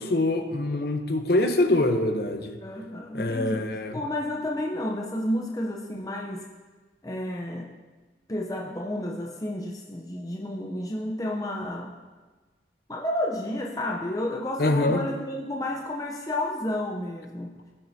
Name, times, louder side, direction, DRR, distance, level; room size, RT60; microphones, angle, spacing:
voice 1, 0.0-2.6 3.1-4.0 14.6-15.0, left 2 dB, 60° left, 6 dB, 0.8 m, -24 dB
voice 2, 2.6-6.4 7.0-7.7 8.3-11.9 12.9-17.5, left 1 dB, 20° left, -1 dB, 0.6 m, -31 dB
15.0 x 7.4 x 2.7 m, 1.3 s
head